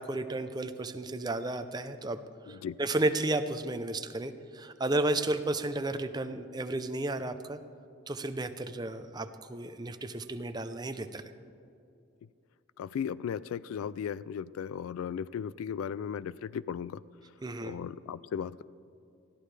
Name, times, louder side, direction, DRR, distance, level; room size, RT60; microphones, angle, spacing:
voice 1, 0.0-2.2 2.5-7.6 8.1-11.3 17.4-17.7, right 2 dB, 20° right, 10 dB, 0.5 m, -33 dB
voice 2, 2.5-2.8 12.8-17.0 17.6-18.6, left 8 dB, 90° left, 18 dB, 0.3 m, -36 dB
20.5 x 14.0 x 3.3 m, 2.6 s
head